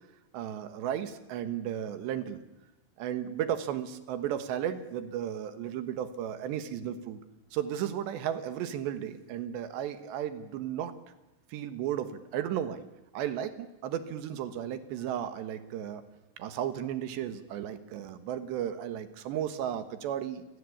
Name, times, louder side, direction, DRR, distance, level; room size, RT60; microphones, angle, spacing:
voice 1, 0.3-2.4 3.0-7.2 7.5-11.0 11.5-12.8 13.1-16.0 16.4-20.5, right 10 dB, 75° right, 11 dB, 3.4 m, -34 dB
28.5 x 18.0 x 8.5 m, 1.1 s
omnidirectional pair, 5.3 m